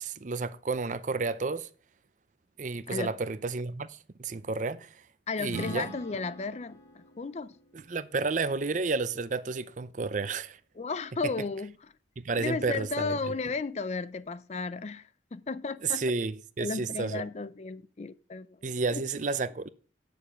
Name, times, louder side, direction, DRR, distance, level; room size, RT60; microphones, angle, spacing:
voice 1, 0.0-1.7 2.6-4.9 5.4-6.0 7.7-10.6 12.2-13.2 15.8-17.2 18.6-19.7, right 4 dB, 45° right, 0.5 m, -31 dB
voice 2, 5.3-7.6 10.8-11.7 12.4-16.0 16.6-18.5 18.9-19.0, left 4 dB, 40° left, 0.4 m, -34 dB
Acoustic guitar / Strum, 5.5-9.1, right 1 dB, 80° left, 3.0 m, -45 dB
9.0 x 6.8 x 5.2 m
head